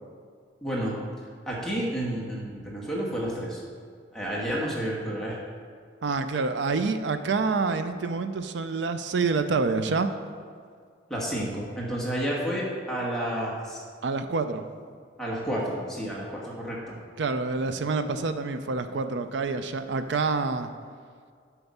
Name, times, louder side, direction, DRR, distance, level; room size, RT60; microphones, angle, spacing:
voice 1, 0.6-1.0 1.5-3.6 4.1-5.4 11.1-13.8 15.2-17.0, equal, ahead, -5 dB, 1.3 m, -30 dB
voice 2, 6.0-10.1 14.0-14.6 17.2-20.7, right 4 dB, 70° right, 9 dB, 0.4 m, -27 dB
7.9 x 5.9 x 5.4 m, 2.1 s
head